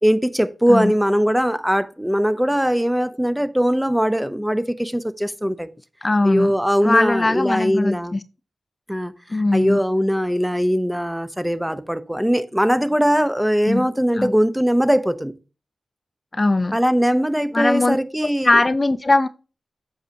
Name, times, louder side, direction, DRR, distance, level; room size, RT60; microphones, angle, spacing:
voice 1, 0.0-5.7 6.2-8.2 8.9-15.3 16.7-18.6, equal, 5° right, 0.7 m, -20 dB
voice 2, 6.0-6.5 6.8-8.2 9.3-9.8 13.7-13.9 14.1-14.3 16.3-16.8 17.5-18.0 18.2-19.3, left 2 dB, 35° left, 0.4 m, -20 dB
7.7 x 6.4 x 2.8 m
cardioid pair, 50°, 0 cm